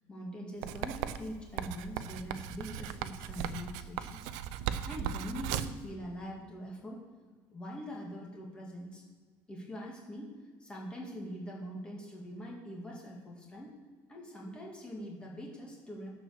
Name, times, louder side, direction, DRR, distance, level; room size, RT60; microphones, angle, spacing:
voice 1, 0.1-4.3 4.8-7.0 7.5-9.0 9.5-10.3 10.6-13.7 14.1-16.1, equal, 15° left, -2 dB, 1.9 m, -43 dB
Writing, 0.6-5.8, right 10 dB, 85° right, 0.6 m, -37 dB
12.5 x 4.8 x 6.4 m, 1.5 s
cardioid pair, 160°, 7 cm